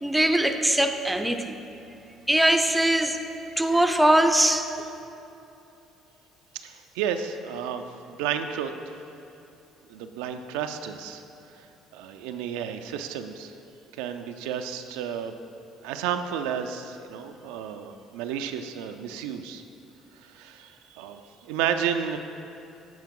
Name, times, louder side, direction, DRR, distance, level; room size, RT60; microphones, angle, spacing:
voice 1, 0.0-1.6 2.3-3.2 3.6-4.7, right 1 dB, 5° right, 6 dB, 0.5 m, -21 dB
voice 2, 6.6-8.7 9.9-11.2 11.9-13.5 14.0-15.3 15.8-19.6 20.2-22.2, right 8 dB, 90° right, 7 dB, 0.3 m, -32 dB
9.2 x 4.6 x 3.7 m, 2.8 s
supercardioid pair, 80°, 0 cm